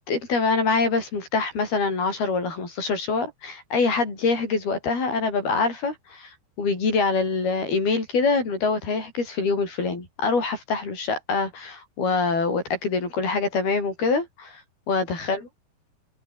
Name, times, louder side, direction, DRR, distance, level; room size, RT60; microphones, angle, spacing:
voice 1, 0.1-6.3 6.6-14.5 14.9-15.4, left 4 dB, 85° left, 9.8 m, -25 dB
omnidirectional pair, 4.3 m